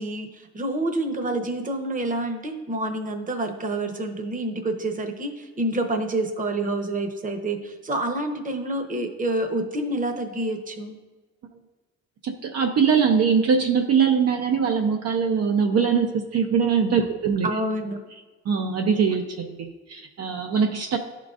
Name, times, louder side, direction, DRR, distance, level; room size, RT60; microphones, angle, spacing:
voice 1, 0.0-11.0 17.4-18.0, right 1 dB, 25° right, 5 dB, 0.9 m, -28 dB
voice 2, 12.2-17.5 18.5-21.0, right 6 dB, 55° right, 3 dB, 0.6 m, -22 dB
11.5 x 3.8 x 2.4 m, 1.2 s
cardioid pair, 90°, 30 cm